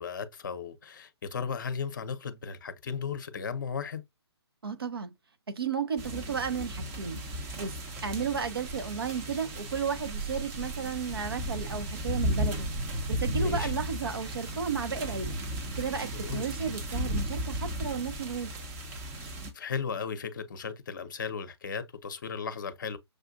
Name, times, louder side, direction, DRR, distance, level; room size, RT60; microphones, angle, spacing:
voice 1, 0.0-4.0 13.4-13.7 16.1-16.5 19.5-23.0, left 6 dB, 45° left, 0.8 m, -36 dB
voice 2, 4.6-5.1 5.5-7.2 7.6-7.8 8.0-12.7 13.1-15.4 15.7-18.5, right 6 dB, 60° right, 1.0 m, -33 dB
sound 1, 6.0-19.5, right 1 dB, 15° right, 0.7 m, -35 dB
6.5 x 2.5 x 2.5 m
figure-of-eight pair, 135°, 14 cm